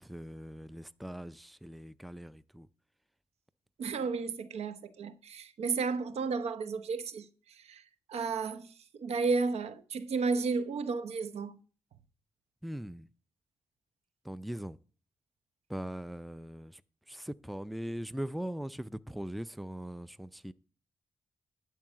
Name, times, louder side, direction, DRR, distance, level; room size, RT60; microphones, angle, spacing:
voice 1, 0.0-2.7 12.6-13.1 14.2-14.8 15.7-16.8 17.1-20.5, equal, ahead, 0.5 m, -40 dB
voice 2, 3.8-7.3 7.6-7.8 8.1-8.7 9.0-11.6, right 4 dB, 80° right, 0.8 m, -32 dB
11.0 x 4.7 x 7.4 m
cardioid pair, 60°, 11 cm